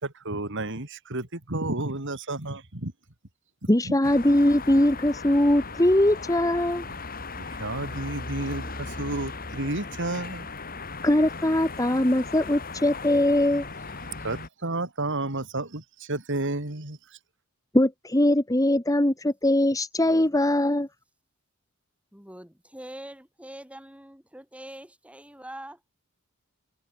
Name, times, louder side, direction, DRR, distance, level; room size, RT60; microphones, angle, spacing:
voice 1, 0.0-2.9 3.9-4.0 7.4-10.5 14.2-17.2, right 2 dB, 60° right, 3.5 m, -31 dB
voice 2, 3.7-6.8 11.0-13.6 17.7-20.9, left 1 dB, 15° left, 1.6 m, -21 dB
sound 1, 4.0-14.5, left 3 dB, 40° left, 6.0 m, -37 dB
voice 3, 22.1-25.8, right 1 dB, 5° right, 6.9 m, -43 dB
head